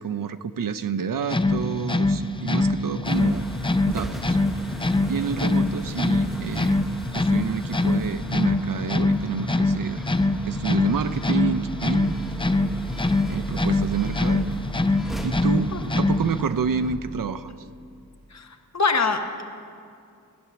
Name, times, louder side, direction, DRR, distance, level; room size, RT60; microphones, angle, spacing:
voice 1, 0.0-3.4 3.9-4.4 5.1-6.8 7.1-10.0 10.4-12.2 13.3-14.5 15.2-17.5, right 6 dB, 85° right, 11 dB, 0.6 m, -29 dB
sound 1, 1.2-16.5, left 2 dB, 15° left, 0.5 m, -24 dB
sound 2, 3.0-17.0, right 1 dB, ahead, 1.0 m, -37 dB
voice 2, 15.7-16.0 18.3-19.4, left 4 dB, 55° left, 5 dB, 1.2 m, -25 dB
15.5 x 10.5 x 6.9 m, 2.4 s
wide cardioid pair, 90°, 33 cm